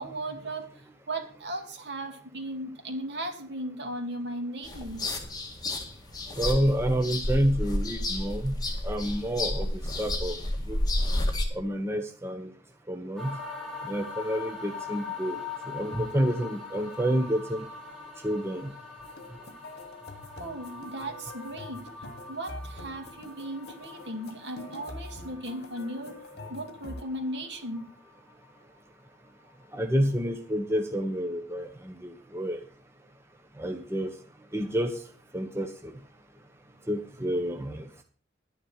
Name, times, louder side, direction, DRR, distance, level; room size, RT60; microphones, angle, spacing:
voice 1, 0.0-5.1 20.4-21.9 22.3-26.2 26.5-27.9, right 1 dB, 65° right, 4 dB, 2.6 m, -37 dB
sound 1, 4.6-11.4, left 1 dB, 20° left, 1.9 m, -30 dB
voice 2, 6.4-8.5 8.8-10.4 10.7-10.8 11.5-12.5 12.9-13.4 13.8-15.4 15.7-17.7 18.2-18.7 29.7-32.6 33.6-34.1 34.5-34.9 35.3-35.9 36.9-37.9, equal, 15° right, 4 dB, 1.1 m, -29 dB
sound 2, 13.2-29.1 29.4-29.5, left 4 dB, ahead, 3.1 m, -43 dB
sound 3, 19.0-27.0, left 1 dB, 60° left, 1.7 m, -45 dB
11.0 x 10.0 x 5.9 m, 0.41 s
head